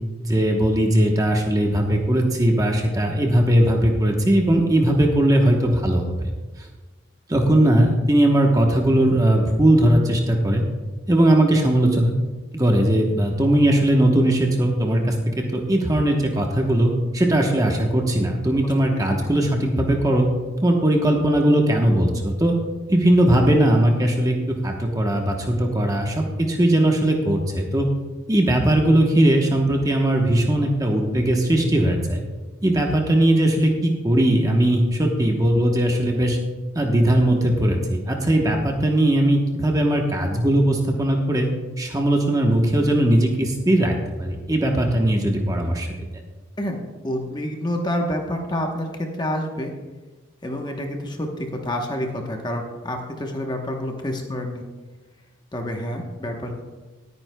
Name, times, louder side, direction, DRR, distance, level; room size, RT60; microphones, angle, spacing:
voice 1, 0.2-6.3 7.3-10.6 11.1-12.1 12.5-20.3 20.6-22.5 22.9-24.4 24.6-27.9 28.3-32.2 32.6-36.4 36.7-41.5 41.8-45.9, right 1 dB, 15° right, 1 dB, 1.0 m, -19 dB
voice 2, 18.6-19.1 46.6-46.8 47.0-49.7 50.4-54.6 55.5-56.6, left 1 dB, 20° left, 2 dB, 1.0 m, -28 dB
19.0 x 9.4 x 2.2 m, 1.3 s
head